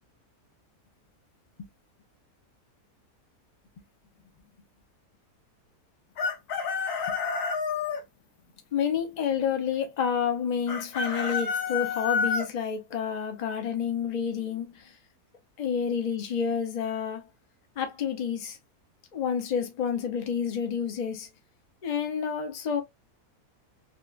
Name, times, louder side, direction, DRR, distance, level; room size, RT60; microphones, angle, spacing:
Chicken rooster, 6.2-8.0 10.7-12.5, left 5 dB, 80° left, 1.2 m, -29 dB
voice 1, 8.7-14.9 15.6-17.3 17.8-18.6 19.1-21.3 21.8-22.8, left 7 dB, 45° left, 0.5 m, -29 dB
3.2 x 2.4 x 2.3 m
omnidirectional pair, 1.6 m